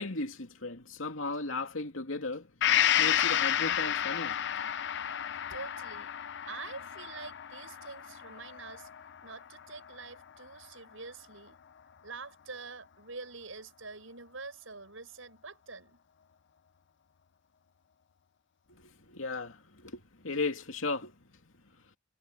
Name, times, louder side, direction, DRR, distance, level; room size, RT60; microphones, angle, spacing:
voice 1, 0.0-2.5 3.0-4.7 18.7-21.1, left 3 dB, 80° left, 2.6 m, -36 dB
Gong, 2.6-10.2 10.6-10.7, left 10 dB, 65° left, 0.6 m, -31 dB
voice 2, 5.5-6.2 6.5-8.9 9.2-11.6 12.0-16.0, right 4 dB, 80° right, 7.5 m, -46 dB
head